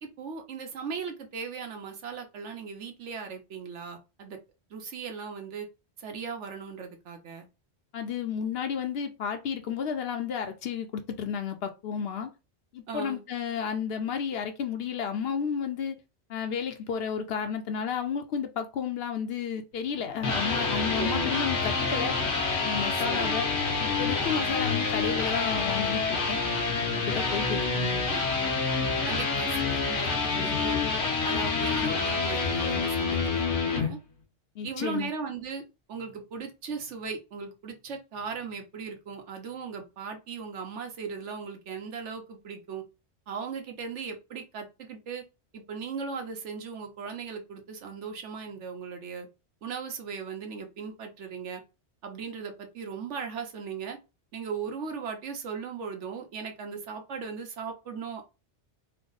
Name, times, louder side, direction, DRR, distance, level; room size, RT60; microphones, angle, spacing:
voice 1, 0.0-4.4 4.7-5.7 6.0-7.5 12.9-13.2 20.9-21.3 23.0-23.4 27.8-28.3 29.0-30.8 31.2-33.2 33.6-34.0 34.6-35.6 35.9-42.8 43.3-45.2 45.5-49.3 49.6-51.6 52.0-54.0 54.3-58.3, right 5 dB, 85° right, 1.2 m, -38 dB
voice 2, 7.9-12.3 12.7-16.0 16.3-22.2 22.6-23.5 23.8-26.4 26.9-28.0 34.6-35.1, left 7 dB, 65° left, 0.8 m, -32 dB
sound 1, 19.9-33.9, left 4 dB, 80° left, 1.1 m, -27 dB
3.4 x 2.0 x 3.8 m
omnidirectional pair, 1.2 m